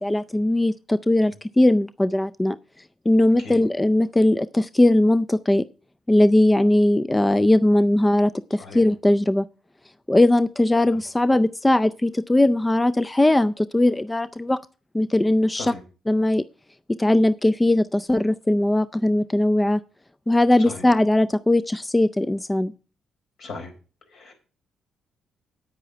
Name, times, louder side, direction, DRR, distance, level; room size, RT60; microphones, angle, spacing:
voice 1, 0.0-2.6 3.1-5.6 6.1-9.5 10.1-14.6 14.9-15.7 16.1-16.4 16.9-19.8 20.3-22.7, left 1 dB, 15° left, 13 dB, 0.4 m, -19 dB
voice 2, 23.4-23.7 24.1-24.3, left 3 dB, 65° left, 4 dB, 4.4 m, -36 dB
9.4 x 8.5 x 5.6 m, 0.37 s
cardioid pair, 90°, 0 cm